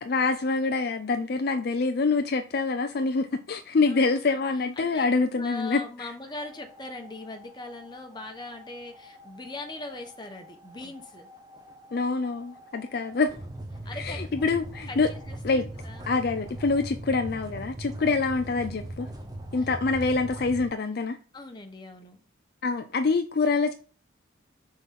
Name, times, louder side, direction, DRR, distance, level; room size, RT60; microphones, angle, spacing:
voice 1, 0.0-6.1 11.9-13.4 13.9-15.1 15.4-15.7 16.1-19.1 19.5-21.2 22.6-23.7, left 4 dB, 50° left, 0.4 m, -26 dB
voice 2, 3.9-5.0 5.4-11.3 13.8-14.3 14.9-16.1 19.6-19.7 21.3-22.2, left 2 dB, 20° left, 1.0 m, -41 dB
sound 1, 6.3-20.7, right 1 dB, 20° right, 0.8 m, -41 dB
6.0 x 3.9 x 5.7 m
head